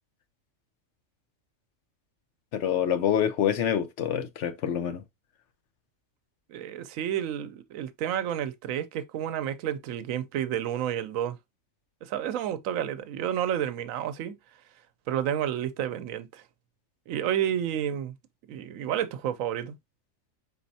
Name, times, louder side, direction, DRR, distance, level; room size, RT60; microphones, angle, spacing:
voice 1, 2.5-5.0, left 9 dB, 65° left, 0.9 m, -26 dB
voice 2, 6.5-11.4 12.0-14.4 15.1-16.4 17.1-18.1 18.5-19.7, right 10 dB, 85° right, 1.0 m, -30 dB
4.5 x 4.0 x 2.6 m
omnidirectional pair, 1.4 m